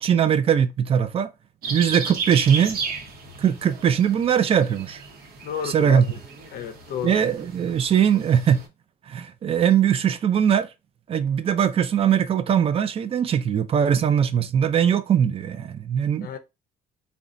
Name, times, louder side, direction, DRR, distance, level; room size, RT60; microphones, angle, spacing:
voice 1, 0.0-1.3 1.7-2.8 3.4-5.0 5.6-6.0 7.0-8.6 9.1-10.7 11.1-16.3, right 8 dB, 35° right, 0.4 m, -21 dB
sound 1, 1.6-8.7, right 4 dB, 65° right, 0.9 m, -35 dB
voice 2, 5.4-6.2 6.5-7.2 16.2-16.4, left 9 dB, 60° left, 0.5 m, -32 dB
3.8 x 2.2 x 2.4 m
cardioid pair, 110°, 17 cm